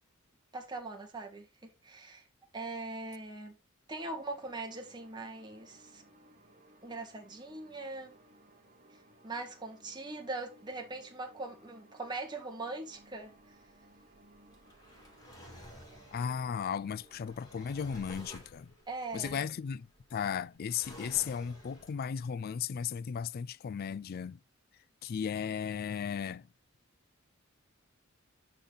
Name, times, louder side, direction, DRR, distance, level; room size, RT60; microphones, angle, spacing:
voice 1, 0.5-2.3 2.5-3.6 3.9-6.0 6.8-8.2 8.9-13.6 18.9-19.4, right 2 dB, 20° right, 1.7 m, -41 dB
sound 1, 4.0-17.3, right 1 dB, 40° right, 1.4 m, -61 dB
Drawer open or close, 12.9-22.2, equal, 20° left, 2.8 m, -53 dB
voice 2, 16.1-18.7 19.1-24.4 25.0-26.5, left 7 dB, 45° left, 0.3 m, -35 dB
10.0 x 4.0 x 4.0 m
head